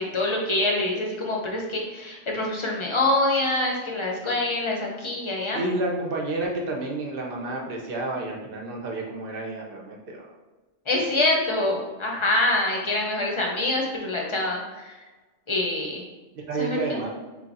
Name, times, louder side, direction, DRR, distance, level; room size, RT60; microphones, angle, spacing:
voice 1, 0.0-5.6 10.9-15.0 15.5-16.0 16.6-17.0, left 2 dB, 30° left, -1 dB, 0.7 m, -25 dB
voice 2, 5.5-10.3 16.3-17.1, right 2 dB, 55° right, 0 dB, 0.9 m, -30 dB
3.8 x 3.2 x 4.0 m, 1.2 s
omnidirectional pair, 1.2 m